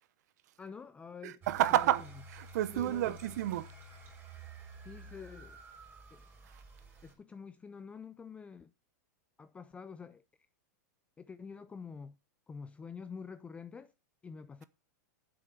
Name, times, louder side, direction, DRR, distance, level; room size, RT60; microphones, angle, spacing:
voice 1, 0.6-1.4 1.7-1.9 2.7-3.2 4.8-5.6 6.1-6.3 7.0-8.7 9.4-10.2 11.2-12.2 12.5-13.9 14.2-14.6, left 5 dB, 15° left, 0.4 m, -47 dB
voice 2, 1.2-3.7, right 13 dB, 70° right, 1.0 m, -30 dB
sound 1, 1.4-7.1, right 3 dB, 20° right, 4.0 m, -51 dB
7.8 x 7.5 x 6.6 m
supercardioid pair, 135°, 10 cm